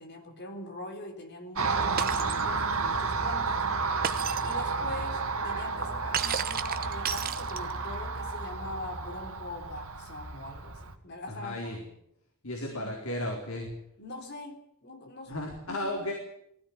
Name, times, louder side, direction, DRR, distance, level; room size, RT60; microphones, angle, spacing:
voice 1, 0.0-3.7 4.4-11.9 12.6-12.9 14.0-16.0, left 1 dB, 50° left, 5 dB, 3.8 m, -43 dB
Car passing by, 1.6-10.9, right 4 dB, 75° right, 2.1 m, -31 dB
Shatter, 2.0-2.4 4.0-4.5 6.1-7.9, right 8 dB, 40° right, 1.0 m, -32 dB
voice 2, 11.3-11.8 12.4-13.7 15.3-16.1, left 1 dB, 75° left, 0 dB, 4.3 m, -34 dB
20.0 x 16.0 x 9.8 m, 0.77 s
head